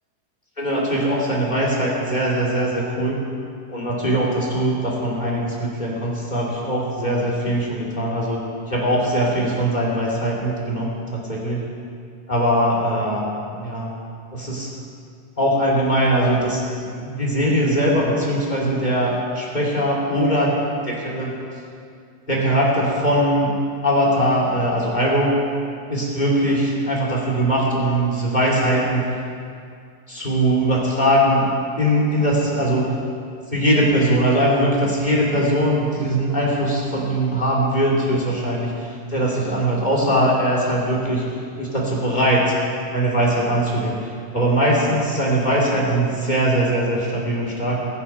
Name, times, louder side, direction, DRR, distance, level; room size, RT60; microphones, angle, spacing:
voice 1, 0.6-3.2 3.7-11.7 12.3-13.3 13.5-13.9 14.3-14.7 15.4-20.5 20.8-21.3 22.3-23.5 23.8-25.3 25.9-29.1 30.1-31.5 31.8-32.9 33.5-41.2 41.6-42.5 42.9-43.9 44.3-47.9, right 1 dB, 15° left, -4 dB, 2.0 m, -21 dB
21.0 x 7.1 x 5.6 m, 2.3 s
omnidirectional pair, 4.0 m